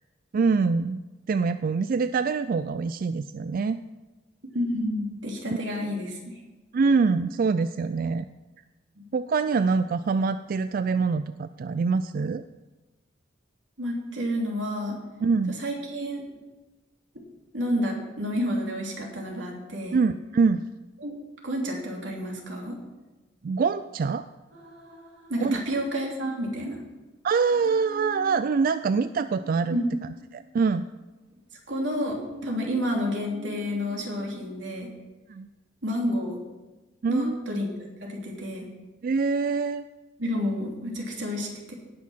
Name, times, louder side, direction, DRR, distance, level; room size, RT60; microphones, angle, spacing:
voice 1, 0.3-1.0 1.3-3.8 6.7-8.2 9.1-12.4 15.2-15.6 19.9-20.7 23.4-24.2 25.4-25.6 27.2-29.8 30.3-30.8 35.3-35.5 37.0-37.3 39.0-39.9, right 4 dB, 50° right, 12 dB, 0.3 m, -24 dB
voice 2, 4.5-6.2 9.0-9.1 13.8-15.0 15.6-16.2 17.5-20.0 21.0-21.1 21.4-22.8 25.3-26.8 29.7-29.9 31.7-34.9 35.8-36.4 37.1-37.7 38.0-38.7 40.2-41.7, equal, 90° right, -1 dB, 2.9 m, -30 dB
sound 1, 24.5-26.7 27.5-31.2 32.0-34.7, equal, 70° right, 3.0 m, -45 dB
18.0 x 6.3 x 5.7 m, 1.1 s
head